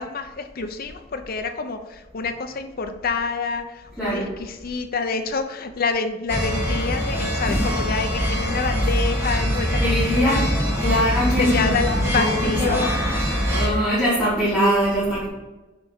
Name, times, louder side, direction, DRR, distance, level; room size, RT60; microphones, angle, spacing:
voice 1, 0.0-10.5 10.8-11.0 11.4-12.9, left 4 dB, 50° left, 7 dB, 0.7 m, -27 dB
voice 2, 4.0-4.3 9.8-10.4 10.8-12.8 13.5-15.3, equal, 5° left, -12 dB, 2.5 m, -22 dB
sound 1, 6.3-13.7, equal, 15° right, 1.6 m, -23 dB
6.8 x 5.0 x 4.3 m, 1.1 s
head